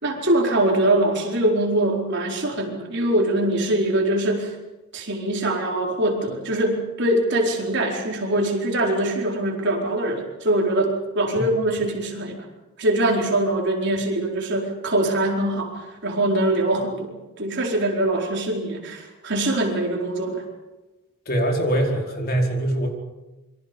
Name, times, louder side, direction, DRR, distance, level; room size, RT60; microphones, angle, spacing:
voice 1, 0.0-4.5 4.9-12.5 12.8-20.4, right 1 dB, 55° right, 1 dB, 4.6 m, -23 dB
voice 2, 21.3-22.9, right 1 dB, 45° left, 1 dB, 4.9 m, -23 dB
27.5 x 23.5 x 5.5 m, 1.1 s
head